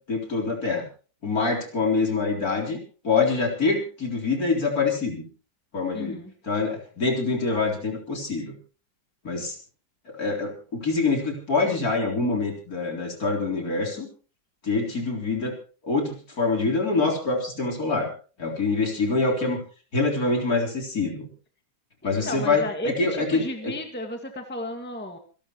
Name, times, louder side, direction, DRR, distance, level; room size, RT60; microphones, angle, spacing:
voice 1, 0.1-0.9 1.2-2.8 3.0-5.2 5.7-6.2 6.4-8.6 9.2-9.5 10.1-14.1 14.6-15.5 15.8-18.1 18.4-19.6 19.9-21.3 22.0-23.7, left 3 dB, 50° left, 2 dB, 4.2 m, -25 dB
voice 2, 5.9-6.3 22.0-25.2, left 1 dB, 5° left, 4 dB, 1.9 m, -33 dB
27.0 x 12.0 x 3.1 m, 0.37 s
omnidirectional pair, 2.0 m